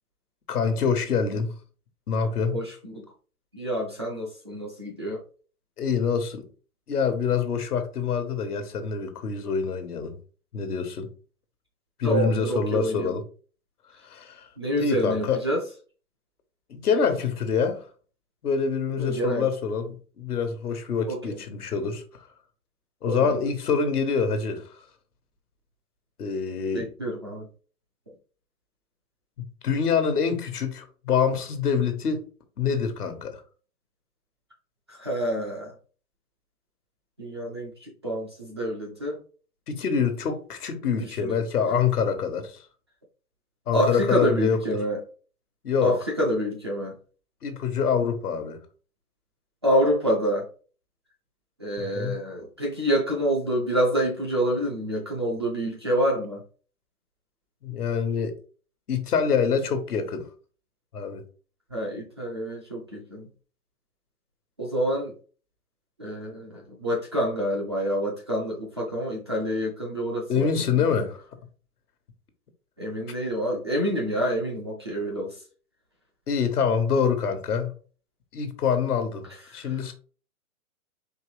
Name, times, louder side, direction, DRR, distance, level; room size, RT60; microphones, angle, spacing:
voice 1, 0.5-1.6 2.1-2.6 5.8-6.5 6.9-10.2 10.5-11.1 12.0-13.2 14.0-14.5 14.8-15.4 16.7-17.8 18.4-22.3 23.0-24.8 26.2-26.9 29.4-32.3 32.6-33.4 39.7-42.6 43.7-44.6 45.6-46.0 47.4-48.6 51.8-52.2 57.6-58.3 58.9-60.3 60.9-61.2 70.3-71.2 76.3-77.7 78.3-79.9, left 6 dB, 85° left, 1.2 m, -26 dB
voice 2, 2.5-3.0 3.5-5.2 12.0-13.1 14.6-15.6 19.0-19.5 21.1-21.4 23.1-23.3 26.7-27.5 34.9-35.7 37.2-39.2 40.8-41.4 43.7-45.0 45.8-47.0 49.6-50.4 51.6-56.4 61.7-63.3 64.6-65.1 66.0-70.5 70.8-70.9 72.8-75.4 79.6-79.7, equal, 20° right, 0.3 m, -27 dB
4.5 x 2.9 x 3.1 m
hypercardioid pair, 130°, 45 cm